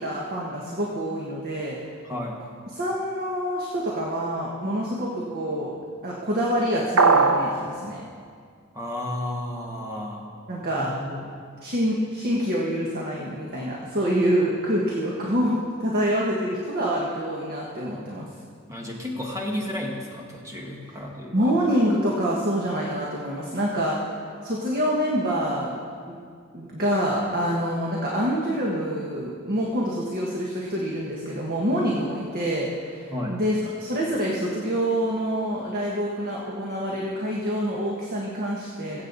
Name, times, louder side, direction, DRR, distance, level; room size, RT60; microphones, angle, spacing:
voice 1, 0.0-1.8 2.7-5.7 6.0-8.0 10.5-10.9 11.6-18.3 20.9-21.0 21.3-24.1 24.4-25.7 26.1-26.2 26.5-39.0, equal, 45° right, -3 dB, 1.5 m, -26 dB
voice 2, 2.0-2.4 8.7-10.3 10.7-11.3 18.7-21.4 33.1-33.4, left 1 dB, 15° right, -1 dB, 1.9 m, -32 dB
sound 1, 7.0-7.5, right 4 dB, 90° right, 1.0 m, -17 dB
22.5 x 8.1 x 4.1 m, 2.1 s
head